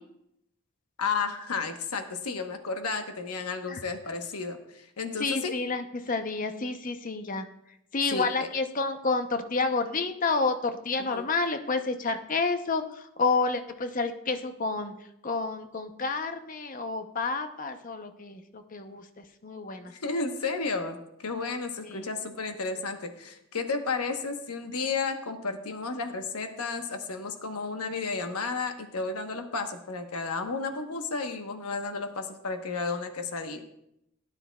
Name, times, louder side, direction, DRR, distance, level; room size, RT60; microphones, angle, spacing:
voice 1, 1.0-5.5 8.1-8.2 11.1-11.2 20.0-33.6, left 4 dB, 85° left, 6 dB, 1.1 m, -32 dB
voice 2, 5.2-19.9 21.8-22.1, left 3 dB, 35° left, 8 dB, 0.7 m, -30 dB
17.0 x 9.8 x 2.3 m, 0.80 s
head